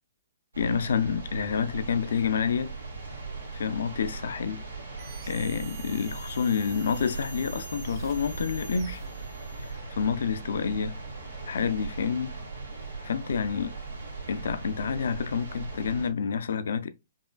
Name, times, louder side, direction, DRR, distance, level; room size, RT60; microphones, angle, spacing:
sound 1, 0.5-16.1, right 4 dB, 85° right, 1.1 m, -39 dB
voice 1, 0.6-2.7 3.5-4.6 5.3-9.0 9.7-10.9 11.5-12.4 13.0-13.7 14.3-16.9, left 6 dB, 65° left, 0.4 m, -28 dB
sound 2, 5.0-9.9, right 5 dB, 35° right, 0.4 m, -46 dB
5.3 x 2.4 x 2.2 m
hypercardioid pair, 125°, 0 cm